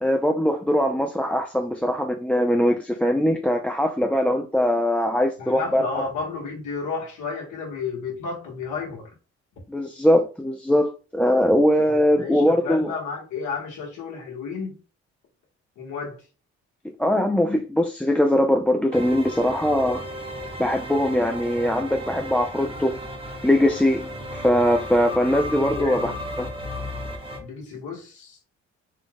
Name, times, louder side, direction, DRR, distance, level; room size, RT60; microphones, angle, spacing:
voice 1, 0.0-5.9 9.7-12.9 16.8-20.0 20.6-23.0 23.4-26.1 26.4-26.5, equal, 5° left, 0.4 m, -21 dB
voice 2, 5.4-9.1 11.9-14.7 15.8-16.2 25.8-26.2 27.4-28.4, left 5 dB, 75° left, 1.5 m, -32 dB
sound 1, 18.9-27.4, equal, 20° right, 1.0 m, -34 dB
4.1 x 2.4 x 3.4 m
cardioid pair, 90°, 30 cm